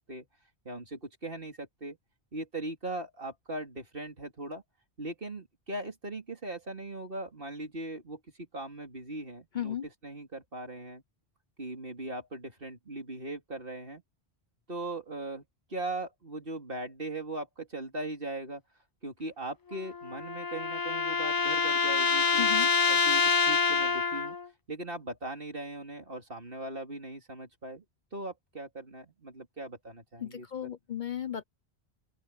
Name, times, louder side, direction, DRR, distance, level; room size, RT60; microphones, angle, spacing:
voice 1, 0.7-2.0 2.3-4.6 5.0-11.0 11.6-14.0 14.7-15.4 15.7-18.6 19.0-22.5 22.8-24.4 24.7-27.8 28.1-30.7, right 2 dB, 60° right, 3.6 m, -39 dB
sound 1, 19.7-24.5, left 5 dB, 30° left, 0.4 m, -26 dB
voice 2, 22.4-22.7 30.2-31.4, left 10 dB, 50° left, 0.8 m, -35 dB
open air
omnidirectional pair, 1.1 m